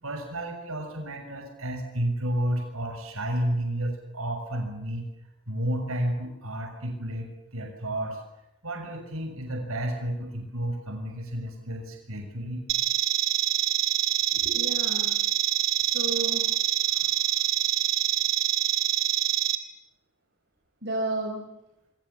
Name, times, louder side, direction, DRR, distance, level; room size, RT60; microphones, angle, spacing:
voice 1, 0.0-5.1 5.5-8.2 8.6-12.6 16.9-17.1, right 1 dB, 90° right, 4 dB, 6.7 m, -31 dB
sound 1, 12.7-19.6, right 13 dB, 70° right, 2.4 m, -25 dB
voice 2, 14.3-15.1 15.8-16.5 20.8-21.5, right 2 dB, 55° right, 1 dB, 4.7 m, -32 dB
28.0 x 25.5 x 7.2 m, 0.90 s
head